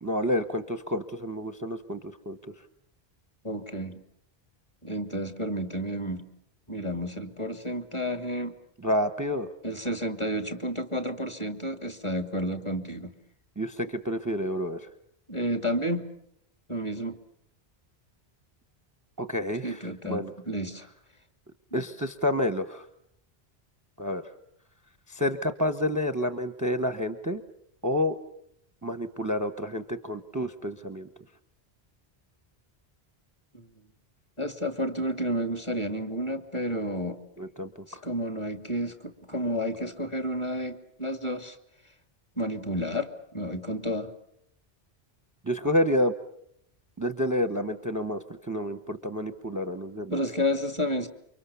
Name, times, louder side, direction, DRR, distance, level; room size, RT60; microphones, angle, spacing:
voice 1, 0.0-2.4 8.8-9.5 13.6-14.8 19.2-19.8 20.1-20.3 21.7-22.8 24.0-24.2 25.1-27.4 27.8-28.2 28.8-31.1 37.4-38.0 45.4-46.1 47.0-50.2, left 1 dB, 20° right, 10 dB, 1.0 m, -29 dB
voice 2, 3.4-4.0 4.8-6.2 6.7-8.5 9.6-13.1 15.3-16.0 16.7-17.2 19.6-20.9 21.7-21.8 33.5-33.7 34.4-37.2 37.9-41.6 42.4-44.1 50.1-51.1, equal, 25° left, 7 dB, 2.5 m, -31 dB
29.0 x 25.0 x 7.0 m, 0.74 s
omnidirectional pair, 1.1 m